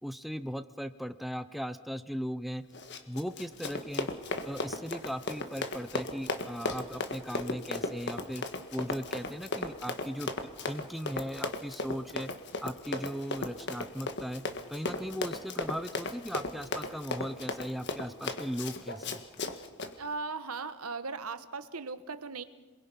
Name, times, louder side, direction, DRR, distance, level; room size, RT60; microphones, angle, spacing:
voice 1, 0.0-2.6 3.1-4.1 4.4-8.4 8.7-10.3 10.6-12.3 12.6-14.4 14.7-19.2, equal, ahead, 10 dB, 0.6 m, -37 dB
Run, 2.7-19.9, left 2 dB, 50° left, 1.6 m, -36 dB
voice 2, 20.0-22.4, right 4 dB, 85° right, 11 dB, 1.2 m, -38 dB
27.5 x 21.5 x 5.5 m, 1.2 s
head